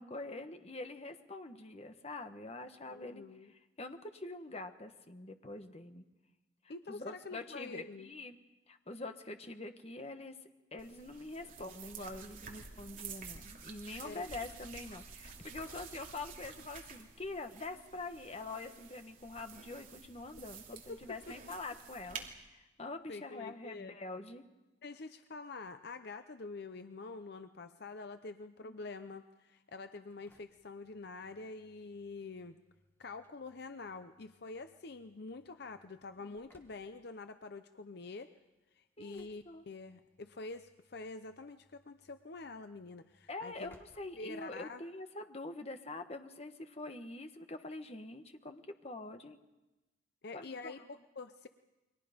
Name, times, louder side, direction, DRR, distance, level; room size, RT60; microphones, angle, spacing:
voice 1, 0.0-6.0 6.6-8.4 8.7-10.4 10.7-24.4 28.6-28.8 35.6-35.7 39.0-39.6 43.3-49.4 50.3-50.8, left 2 dB, 35° left, 7 dB, 1.3 m, -45 dB
voice 2, 2.8-3.5 6.7-8.1 14.0-14.2 20.9-21.2 23.1-24.0 24.8-32.6 33.0-38.3 38.7-43.7 44.2-44.8 50.2-51.5, left 3 dB, 60° left, 9 dB, 0.7 m, -46 dB
sound 1, 10.8-22.3, right 6 dB, 45° right, 2.7 m, -50 dB
Engine / Slam, 30.1-45.0, equal, 10° left, 2.1 m, -70 dB
29.5 x 23.0 x 5.2 m, 1.1 s
head